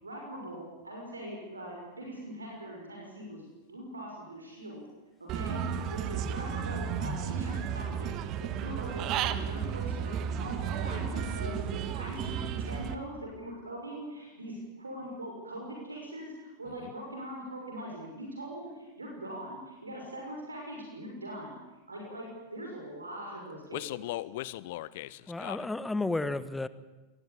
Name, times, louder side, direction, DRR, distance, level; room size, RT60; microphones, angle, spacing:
voice 1, 0.0-4.8 5.2-21.6 21.9-23.8, right 1 dB, 80° right, 0 dB, 6.2 m, -41 dB
Human voice / Bird, 5.3-12.9, right 8 dB, 40° right, 1.7 m, -33 dB
voice 2, 23.7-25.7, left 16 dB, 55° left, 19 dB, 0.8 m, -38 dB
voice 3, 25.3-26.7, left 2 dB, 10° left, 15 dB, 1.4 m, -32 dB
27.5 x 20.0 x 8.8 m, 1.1 s
figure-of-eight pair, 90°, 0 cm